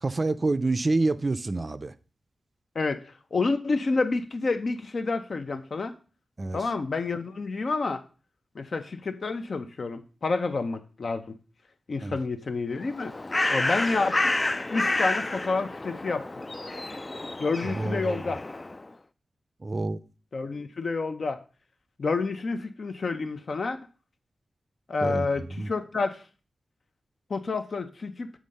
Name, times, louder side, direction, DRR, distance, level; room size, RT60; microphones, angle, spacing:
voice 1, 0.0-1.9 6.4-6.6 12.0-12.2 17.6-18.2 19.6-20.0 25.0-25.7, right 2 dB, 40° right, 0.4 m, -27 dB
voice 2, 3.3-5.9 6.5-8.0 8.5-11.4 11.9-13.1 13.5-14.3 14.7-16.3 17.4-18.4 20.3-21.4 22.0-23.8 24.9-26.2 27.3-28.3, left 3 dB, 60° left, 0.7 m, -29 dB
Bird, 12.8-18.8, left 2 dB, 30° left, 0.3 m, -29 dB
7.3 x 3.7 x 5.3 m
wide cardioid pair, 75°, 0 cm